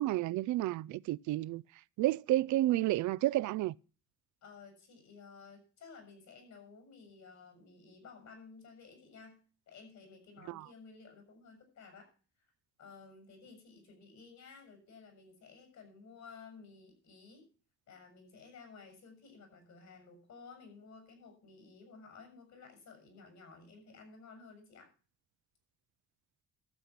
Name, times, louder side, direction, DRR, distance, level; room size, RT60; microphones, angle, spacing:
voice 1, 0.0-1.6 2.0-3.7 10.5-10.6, right 15 dB, 75° right, 0.5 m, -31 dB
voice 2, 4.4-9.4 9.7-12.1 12.8-17.5 17.9-24.9, left 4 dB, 65° left, 6.8 m, -54 dB
12.5 x 8.1 x 5.9 m
cardioid pair, 90°, 30 cm